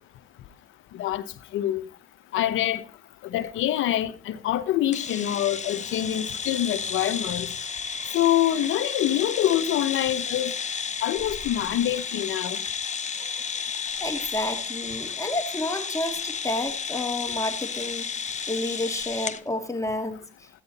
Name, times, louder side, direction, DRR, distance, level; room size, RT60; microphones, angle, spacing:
voice 1, 2.3-2.8 3.2-7.5 8.1-10.5 11.0-12.6, left 12 dB, 85° left, 1.1 m, -25 dB
sound 1, 4.9-19.4, left 6 dB, 35° left, 1.0 m, -32 dB
voice 2, 14.0-18.1 18.5-20.2, left 1 dB, 15° left, 2.5 m, -30 dB
13.5 x 9.9 x 4.2 m
cardioid pair, 90°, 20 cm